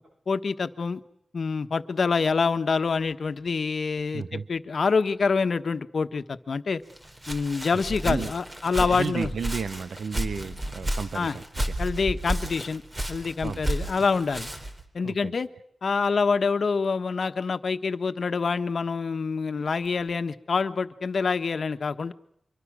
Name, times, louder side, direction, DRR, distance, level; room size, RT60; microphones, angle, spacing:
voice 1, 0.3-1.0 1.3-6.8 7.3-9.3 11.1-11.4 11.8-12.8 13.1-14.5 14.9-15.5 15.8-22.1, left 5 dB, 70° left, 1.3 m, -26 dB
voice 2, 4.1-4.5 7.7-8.3 8.8-11.8 13.4-13.8 15.0-15.3, right 6 dB, 85° right, 1.1 m, -33 dB
Walk footsteps, 6.9-14.8, right 1 dB, 25° right, 4.1 m, -32 dB
25.0 x 24.0 x 6.3 m
cardioid pair, 70°, 0 cm